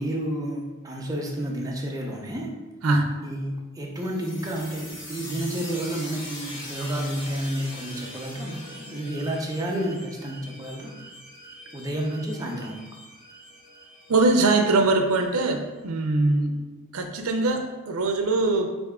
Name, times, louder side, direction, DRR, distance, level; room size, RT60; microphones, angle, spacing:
voice 1, 0.0-2.5 3.2-10.9 11.7-12.8, right 1 dB, 15° right, -1 dB, 0.6 m, -30 dB
voice 2, 2.8-3.1 14.1-16.6 16.9-18.7, right 2 dB, 70° right, 5 dB, 0.6 m, -22 dB
sound 1, 3.9-15.3, left 1 dB, 55° left, 1.4 m, -42 dB
4.1 x 3.5 x 3.6 m, 1.2 s
head